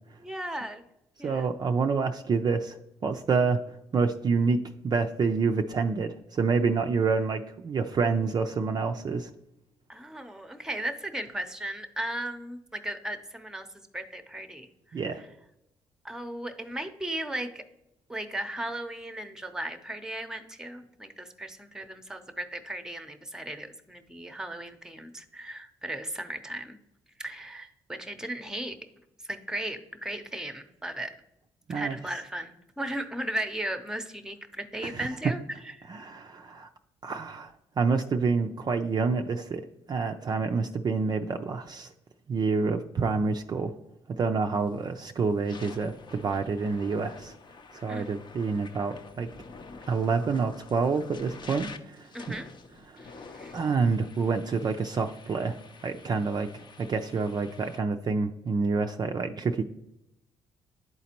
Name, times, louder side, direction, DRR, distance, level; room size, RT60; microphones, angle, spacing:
voice 1, 0.2-0.8 1.2-1.5 9.9-13.7 13.9-14.7 15.1-15.2 16.0-17.6 18.1-26.8 27.2-28.7 29.3-31.1 31.7-35.9 47.9-48.1 52.1-52.5 53.0-53.5, right 1 dB, 5° right, 8 dB, 0.7 m, -36 dB
voice 2, 1.2-2.8 3.0-3.6 3.9-9.3 14.9-15.2 31.7-32.0 34.8-35.1 35.9-36.7 37.0-41.9 42.3-43.8 44.2-47.4 47.7-49.3 49.9-52.1 52.9-53.0 53.5-55.6 55.8-59.6, right 4 dB, 40° right, 5 dB, 0.4 m, -28 dB
sound 1, 44.6-44.8 45.3-57.8, left 4 dB, 45° left, 0.7 m, -48 dB
10.5 x 4.0 x 2.9 m, 0.87 s
supercardioid pair, 70°, 11 cm